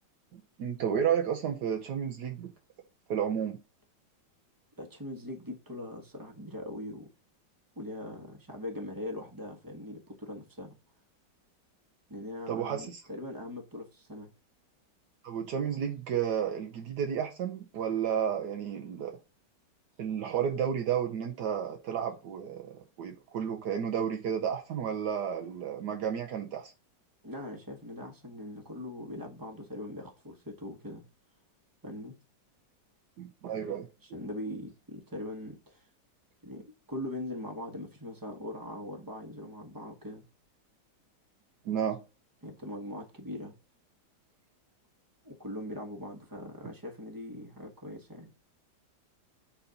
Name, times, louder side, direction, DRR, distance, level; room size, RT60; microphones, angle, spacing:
voice 1, 0.3-2.5 3.1-3.6 12.5-13.0 15.2-19.2 20.0-26.7 33.2-33.9 41.6-42.0, right 8 dB, 75° right, 1.3 m, -32 dB
voice 2, 4.8-7.1 7.8-10.8 12.1-14.3 27.2-31.0 31.8-32.2 34.0-35.9 36.4-40.2 42.4-43.5 45.2-48.3, left 1 dB, 15° right, 1.0 m, -41 dB
7.0 x 4.1 x 4.0 m
omnidirectional pair, 1.9 m